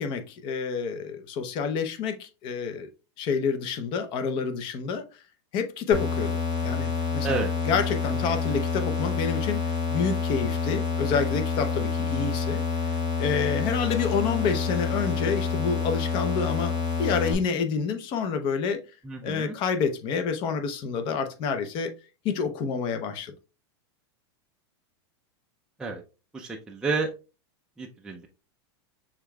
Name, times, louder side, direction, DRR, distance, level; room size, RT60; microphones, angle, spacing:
voice 1, 0.0-2.9 3.2-5.0 5.5-12.6 13.2-18.8 19.2-21.9 22.2-23.3, left 5 dB, 35° left, 0.7 m, -28 dB
sound 1, 5.9-17.3, left 5 dB, 80° left, 1.9 m, -28 dB
voice 2, 19.1-19.6 25.8-26.0 26.3-27.1 27.8-28.3, right 4 dB, 5° right, 0.4 m, -30 dB
6.6 x 3.5 x 2.2 m
supercardioid pair, 155°, 14 cm